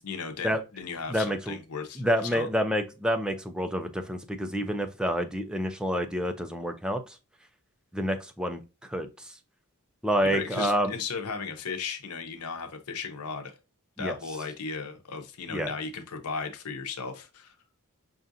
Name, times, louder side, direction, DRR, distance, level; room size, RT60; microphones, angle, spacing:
voice 1, 0.0-2.5 10.2-13.5 14.0-17.5, left 5 dB, 85° left, 5 dB, 0.7 m, -36 dB
voice 2, 1.1-1.6 2.0-7.2 7.9-9.3 10.0-10.9 14.0-14.2 15.5-15.7, equal, 5° right, 6 dB, 0.4 m, -28 dB
5.4 x 2.5 x 2.6 m, 0.29 s
head